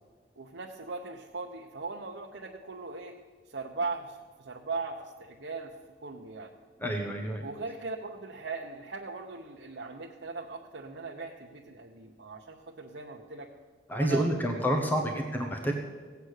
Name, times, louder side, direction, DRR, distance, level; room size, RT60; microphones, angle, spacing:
voice 1, 0.4-3.1 3.5-5.7 6.0-6.5 7.4-13.5 14.0-14.3 14.9-15.2, right 3 dB, 85° right, -1 dB, 0.9 m, -39 dB
voice 2, 6.8-7.5 13.9-15.7, equal, 10° left, 2 dB, 1.0 m, -28 dB
17.0 x 8.1 x 6.5 m, 1.5 s
head